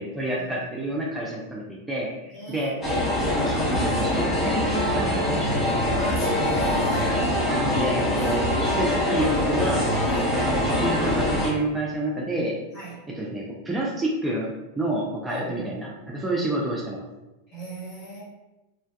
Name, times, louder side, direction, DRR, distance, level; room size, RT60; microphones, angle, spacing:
voice 1, 0.0-2.7 3.3-6.3 7.5-8.4 8.7-9.8 10.2-12.6 13.1-14.5 14.8-17.0, right 1 dB, 10° right, -4 dB, 0.4 m, -29 dB
voice 2, 2.3-3.0 5.9-7.3 8.1-8.5 10.1-10.3 12.7-13.0 15.2-15.7 17.5-18.2, left 1 dB, 35° left, -6 dB, 1.1 m, -35 dB
sound 1, 2.8-11.5, left 1 dB, 15° left, 0.7 m, -23 dB
2.4 x 2.2 x 2.4 m, 1.0 s
figure-of-eight pair, 90°, 0 cm